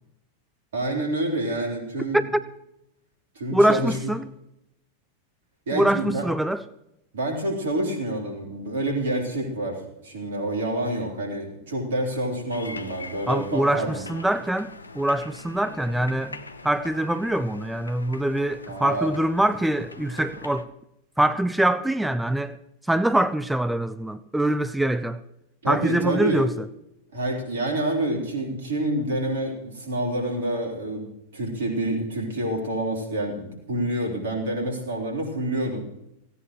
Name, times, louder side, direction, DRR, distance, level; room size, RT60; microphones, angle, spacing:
voice 1, 0.7-2.2 3.4-4.1 5.7-6.3 7.1-14.1 18.7-19.1 25.6-26.4 27.1-31.1 31.3-35.8, right 1 dB, 60° right, 3.7 m, -28 dB
voice 2, 3.5-4.3 5.7-6.6 13.3-20.7 21.2-22.6 22.8-25.2 25.7-26.5, right 1 dB, 5° right, 0.5 m, -24 dB
sound 1, 12.5-20.6, left 3 dB, 80° left, 0.9 m, -42 dB
17.5 x 15.5 x 3.1 m
figure-of-eight pair, 90°, 0 cm